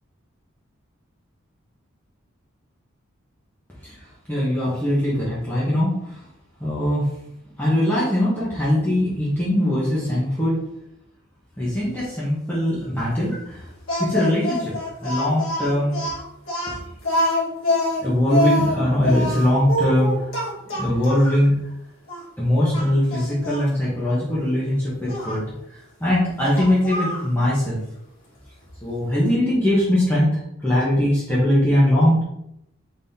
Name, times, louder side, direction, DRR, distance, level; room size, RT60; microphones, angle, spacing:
voice 1, 4.3-6.2 6.6-7.1 7.6-10.6 11.6-13.7 14.0-16.0 18.0-20.3 20.7-21.5 22.4-25.5 26.0-27.8 28.8-32.2, left 1 dB, 10° left, -9 dB, 1.0 m, -21 dB
Speech, 13.9-21.5 22.1-22.2 22.7-23.7 25.1-25.4 26.5-27.3, left 1 dB, 80° left, 1.5 m, -25 dB
4.1 x 3.6 x 2.7 m, 0.79 s
head